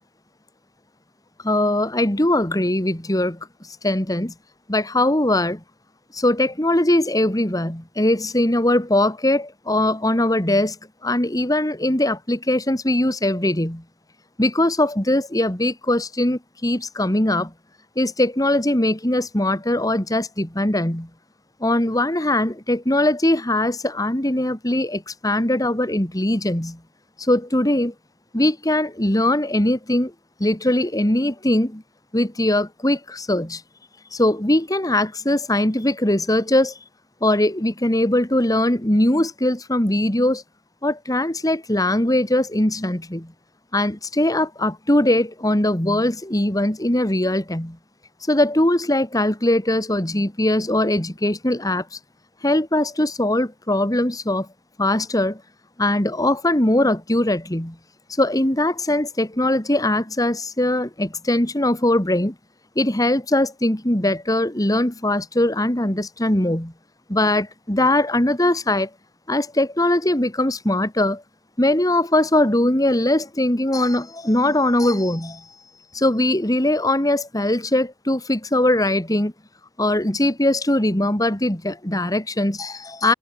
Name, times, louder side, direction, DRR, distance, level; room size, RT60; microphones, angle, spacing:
voice 1, 1.4-3.4 3.8-4.3 4.7-5.6 6.1-10.8 11.0-13.8 14.4-17.5 18.0-21.1 21.6-26.8 27.2-27.9 28.3-30.1 30.4-31.8 32.1-33.6 34.1-36.8 37.2-40.4 40.8-43.3 43.7-47.8 48.3-51.9 52.4-54.5 54.8-55.4 55.8-57.8 58.2-62.3 62.8-66.7 67.1-68.9 69.3-71.2 71.6-75.4 75.9-79.3 79.8-83.1, left 1 dB, 20° left, 2.6 m, -21 dB
head